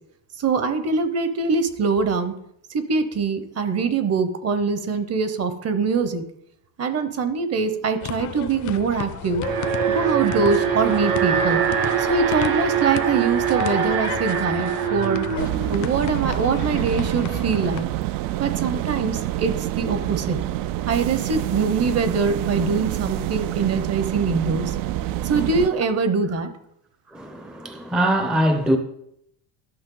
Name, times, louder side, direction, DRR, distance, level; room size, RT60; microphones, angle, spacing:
voice 1, 0.4-2.4 2.7-6.2 6.8-9.4 9.9-11.6 12.0-15.3 15.7-17.9 18.4-20.4 20.9-24.7 25.2-26.5, right 4 dB, 40° right, 1.0 m, -23 dB
sound 1, 8.0-17.8, left 11 dB, 50° left, 0.6 m, -34 dB
Alarm, 9.4-16.5, right 8 dB, 85° right, 1.4 m, -24 dB
sound 2, 15.4-25.7, right 14 dB, 60° right, 0.5 m, -27 dB
voice 2, 27.1-28.8, right 1 dB, ahead, 0.5 m, -22 dB
12.0 x 5.5 x 3.9 m
cardioid pair, 125°, 39 cm